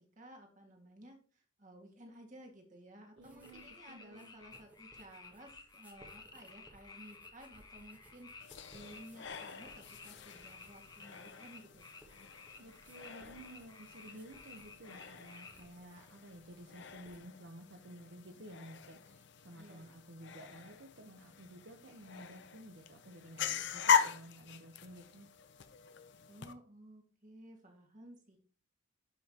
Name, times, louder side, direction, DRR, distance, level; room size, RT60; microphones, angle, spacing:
voice 1, 0.0-11.8 19.5-20.0 26.3-28.4, right 1 dB, 35° right, 2 dB, 1.8 m, -55 dB
sound 1, 3.2-3.8 4.1-17.2, right 1 dB, 5° right, 1.1 m, -64 dB
voice 2, 3.2-4.3 12.6-25.3, right 1 dB, 55° right, 3 dB, 0.9 m, -53 dB
sound 2, 3.4-15.7, left 4 dB, 20° left, 0.9 m, -55 dB
sound 3, 8.4-26.5, left 7 dB, 55° left, 0.6 m, -40 dB
11.5 x 5.5 x 2.9 m, 0.40 s
head